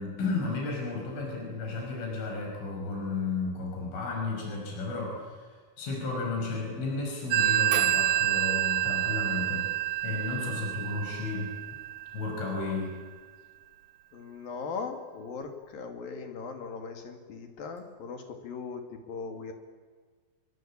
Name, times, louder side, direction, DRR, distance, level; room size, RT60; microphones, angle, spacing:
voice 1, 0.0-9.7 10.0-11.5 12.1-13.0, left 3 dB, 75° left, 1 dB, 8.2 m, -33 dB
Telephone, 7.3-12.6, right 12 dB, 80° right, 1.7 m, -28 dB
voice 2, 14.1-19.5, left 5 dB, 55° left, 5 dB, 3.7 m, -39 dB
27.0 x 23.5 x 8.7 m, 1.5 s
omnidirectional pair, 5.7 m